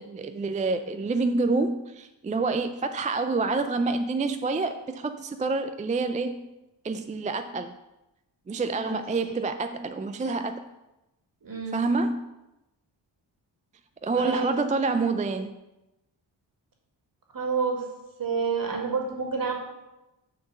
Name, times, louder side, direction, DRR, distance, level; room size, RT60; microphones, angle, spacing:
voice 1, 0.0-6.4 6.8-7.7 8.5-10.6 11.7-12.2 14.0-15.5, right 3 dB, 20° right, 8 dB, 0.3 m, -27 dB
voice 2, 8.8-9.4 11.4-11.8 14.2-14.5 17.3-17.9 18.2-19.6, right 5 dB, 50° right, 1 dB, 1.9 m, -29 dB
7.1 x 3.9 x 6.5 m, 0.98 s
cardioid pair, 70°, 45 cm